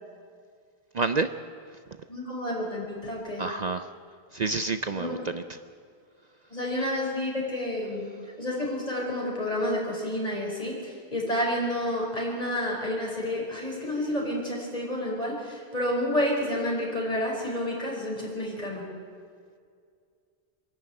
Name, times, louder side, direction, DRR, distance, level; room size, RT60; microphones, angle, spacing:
voice 1, 0.9-1.3 3.4-3.9 4.3-5.6, right 3 dB, 45° right, 9 dB, 0.7 m, -28 dB
voice 2, 2.1-3.4 4.9-5.3 6.5-8.1 8.4-18.9, left 1 dB, 35° left, -2 dB, 5.1 m, -30 dB
25.5 x 11.5 x 8.9 m, 2.2 s
omnidirectional pair, 1.1 m